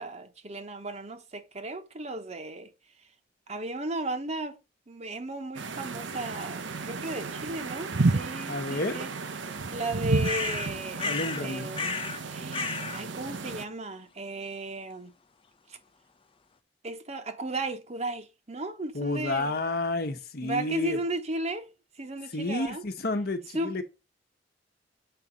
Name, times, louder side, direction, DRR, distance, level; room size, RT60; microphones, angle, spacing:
voice 1, 0.0-2.7 3.5-4.6 4.9-9.1 9.7-11.2 11.4-11.9 12.2-15.1 15.7-15.8 16.8-19.5 20.4-21.7 22.0-22.8 23.5-23.8, right 2 dB, 35° right, 1.0 m, -35 dB
sound 1, 5.5-13.6, right 3 dB, 90° right, 0.8 m, -32 dB
voice 2, 8.5-9.0 11.0-11.9 18.9-21.0 22.3-23.8, left 2 dB, 60° left, 1.1 m, -31 dB
sound 2, 10.2-11.4 11.7-12.2 12.5-13.0, left 4 dB, 30° left, 0.6 m, -32 dB
7.9 x 4.2 x 5.0 m
head